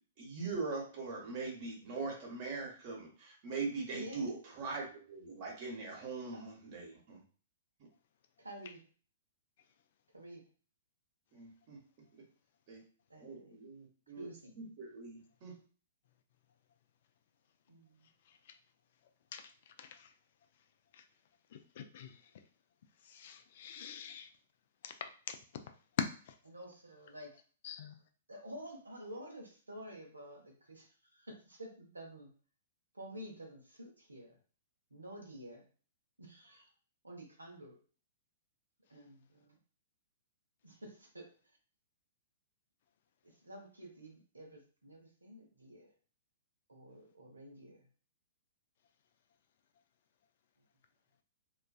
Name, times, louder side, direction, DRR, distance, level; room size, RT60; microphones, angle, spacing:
voice 1, 0.2-7.2 11.3-11.8 12.1-12.2 12.7-12.8 13.2-14.3 14.6-15.5, right 4 dB, 45° right, -1 dB, 1.0 m, -41 dB
voice 2, 3.9-4.3 6.3-6.4 8.4-8.8 10.1-10.4 13.1-13.6 14.2-14.7 17.7-18.1 26.5-27.3 28.3-32.3 32.9-34.4 34.9-35.7 36.2-36.7 37.0-37.8 38.9-39.6 40.6-41.3 43.2-45.9 46.7-47.9, right 1 dB, 90° right, 1 dB, 0.7 m, -50 dB
voice 3, 19.8-20.1 20.9-21.0 21.5-22.2 23.0-24.3 24.8-25.4 26.0-26.3 27.6-27.9, left 8 dB, 55° left, 7 dB, 0.3 m, -42 dB
2.4 x 2.3 x 2.3 m, 0.40 s
figure-of-eight pair, 115°, 0 cm